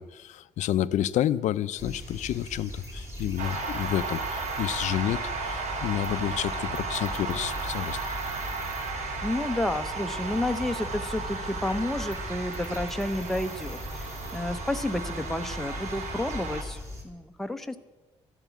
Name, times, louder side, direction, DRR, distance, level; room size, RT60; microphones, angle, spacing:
voice 1, 0.0-8.0, left 12 dB, 90° left, 0.5 m, -30 dB
sound 1, 1.8-17.0, equal, 20° right, 2.8 m, -40 dB
sound 2, 3.4-16.6, right 4 dB, 85° right, 2.1 m, -35 dB
voice 2, 9.2-17.8, left 1 dB, 5° left, 0.6 m, -31 dB
12.0 x 11.0 x 8.3 m
wide cardioid pair, 180°, 12 cm